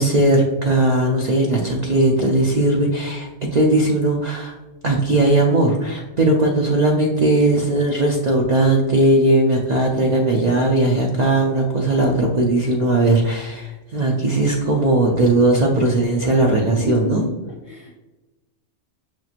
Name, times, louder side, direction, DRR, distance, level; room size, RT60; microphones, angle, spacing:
voice 1, 0.0-4.5 4.8-17.2, right 2 dB, 55° right, 0 dB, 0.4 m, -18 dB
voice 2, 16.8-17.3 17.7-18.0, left 3 dB, 50° left, -1 dB, 0.6 m, -30 dB
5.9 x 2.9 x 2.4 m, 1.1 s
omnidirectional pair, 1.2 m